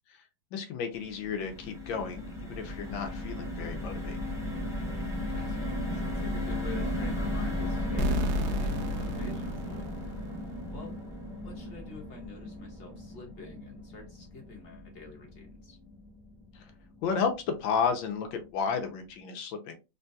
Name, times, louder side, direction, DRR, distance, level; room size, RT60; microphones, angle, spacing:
voice 1, 0.5-4.2 16.5-16.7 17.0-19.7, left 6 dB, 85° left, 6 dB, 1.4 m, -32 dB
sound 1, 0.9-17.2 17.6-17.8 18.0-18.3, left 1 dB, 5° right, 0.4 m, -36 dB
voice 2, 5.3-9.9 10.7-11.0 11.4-15.8, left 3 dB, 40° left, 0 dB, 1.0 m, -47 dB
sound 2, 8.0-10.7, left 1 dB, 70° right, 0.9 m, -32 dB
3.7 x 2.3 x 2.6 m, 0.27 s
omnidirectional pair, 2.1 m